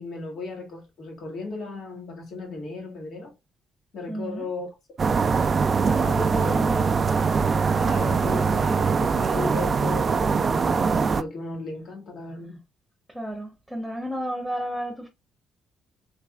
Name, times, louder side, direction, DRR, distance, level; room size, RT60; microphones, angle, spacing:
voice 1, 0.0-3.3 3.9-5.0 5.9-6.9 7.8-12.6, left 2 dB, 65° left, 1.7 m, -36 dB
voice 2, 4.1-4.5 6.3-7.0 8.2-8.6 13.1-15.1, equal, 5° right, 1.0 m, -32 dB
sound 1, 5.0-11.2, right 5 dB, 40° right, 0.3 m, -22 dB
3.3 x 3.3 x 2.3 m
supercardioid pair, 70°, 0 cm